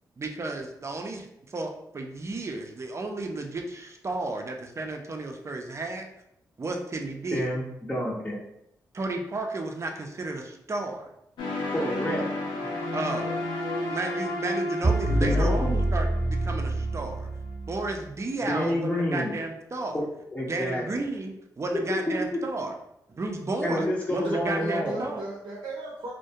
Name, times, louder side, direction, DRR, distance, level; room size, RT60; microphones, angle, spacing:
voice 1, 0.2-6.1 6.6-7.5 8.9-11.1 12.9-13.4 13.9-17.3 17.7-20.0 20.5-22.7 23.1-25.2, right 2 dB, 40° right, 3 dB, 0.5 m, -33 dB
voice 2, 7.3-7.6 7.9-8.4 11.7-12.2 12.6-12.7 15.2-15.8 18.5-19.3 19.9-20.0 20.3-20.8 21.7-22.2 23.6-25.0, equal, 15° left, -5 dB, 0.6 m, -28 dB
sound 1, 11.4-17.3, left 1 dB, 85° left, 0.6 m, -32 dB
sound 2, 14.8-17.9, right 1 dB, 20° right, 0.9 m, -26 dB
voice 3, 24.2-26.1, right 2 dB, 85° right, -4 dB, 0.6 m, -36 dB
2.3 x 2.1 x 2.7 m, 0.79 s
cardioid pair, 55°, 8 cm